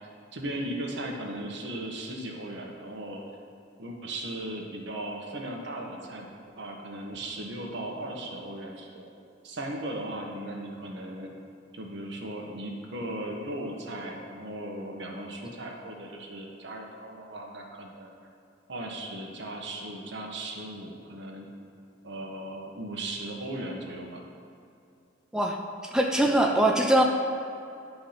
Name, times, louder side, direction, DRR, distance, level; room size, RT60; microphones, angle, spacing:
voice 1, 0.0-3.2 3.8-6.3 6.6-9.1 9.4-11.3 11.7-18.1 18.7-21.5 22.0-24.2, right 1 dB, 65° right, 0 dB, 1.3 m, -37 dB
voice 2, 25.9-27.0, right 1 dB, 5° right, 1 dB, 0.5 m, -22 dB
10.5 x 4.7 x 5.8 m, 2.6 s
head